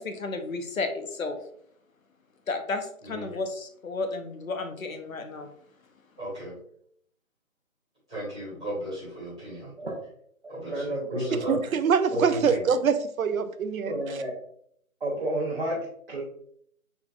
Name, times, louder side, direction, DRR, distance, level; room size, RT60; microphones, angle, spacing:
voice 1, 0.0-1.4 2.5-5.5, left 3 dB, 70° left, 7 dB, 0.8 m, -32 dB
voice 2, 6.2-6.5 8.1-9.7 10.5-11.5 12.1-12.6, equal, 5° right, -19 dB, 0.8 m, -33 dB
voice 3, 10.4-11.6 13.8-14.4 15.0-16.2, right 1 dB, 45° right, -5 dB, 0.8 m, -32 dB
voice 4, 11.5-14.2, right 6 dB, 75° right, 11 dB, 0.6 m, -25 dB
4.2 x 4.0 x 2.4 m, 0.65 s
figure-of-eight pair, 165°, 42 cm